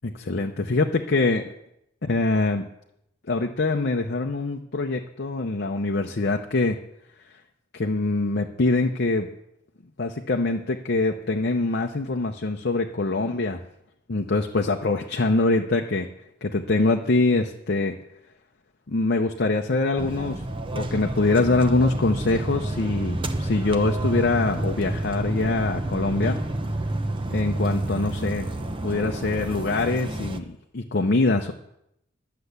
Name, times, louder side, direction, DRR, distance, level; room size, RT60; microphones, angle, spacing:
voice 1, 0.0-1.5 2.0-2.6 3.3-6.8 7.7-9.3 10.0-13.6 14.1-16.1 16.4-17.9 18.9-20.4 20.7-26.4 27.3-28.5 28.8-31.5, left 3 dB, 50° left, 2 dB, 0.7 m, -24 dB
sound 1, 20.0-30.4, right 1 dB, 25° right, 0.7 m, -29 dB
12.0 x 6.8 x 8.1 m, 0.81 s
head